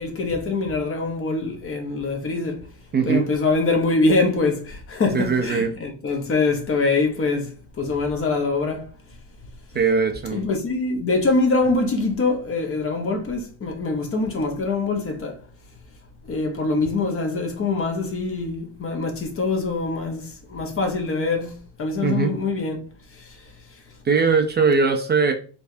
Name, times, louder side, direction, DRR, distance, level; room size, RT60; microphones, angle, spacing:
voice 1, 0.0-2.6 3.0-8.9 10.3-15.4 16.3-20.2 20.5-22.8, left 3 dB, 30° left, 0.9 m, -24 dB
voice 2, 2.9-3.3 5.1-5.7 9.7-10.5 22.0-22.4 24.0-25.3, right 5 dB, 25° right, 0.5 m, -20 dB
4.3 x 3.3 x 2.7 m
cardioid pair, 140°, 42 cm